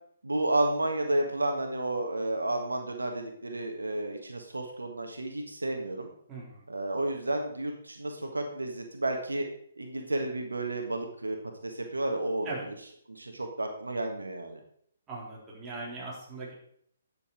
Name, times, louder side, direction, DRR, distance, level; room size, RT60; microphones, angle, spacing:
voice 1, 0.2-6.1 6.7-9.5 9.8-11.4 11.6-12.6 13.1-14.6, right 1 dB, 90° right, 4 dB, 1.5 m, -31 dB
voice 2, 6.3-6.6 12.4-12.6 15.1-16.5, right 3 dB, 20° right, -5 dB, 3.8 m, -40 dB
10.0 x 6.9 x 4.8 m, 0.66 s
figure-of-eight pair, 135°, 0 cm